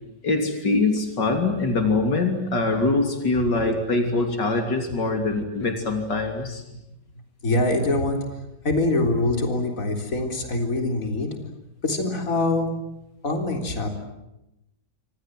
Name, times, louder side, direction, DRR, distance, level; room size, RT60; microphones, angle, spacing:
voice 1, 0.2-6.6, left 3 dB, 80° left, 4 dB, 3.8 m, -23 dB
voice 2, 7.4-11.5 11.8-12.8 13.2-13.9, left 2 dB, 50° left, 4 dB, 4.2 m, -24 dB
28.5 x 26.0 x 7.7 m, 0.91 s
omnidirectional pair, 1.9 m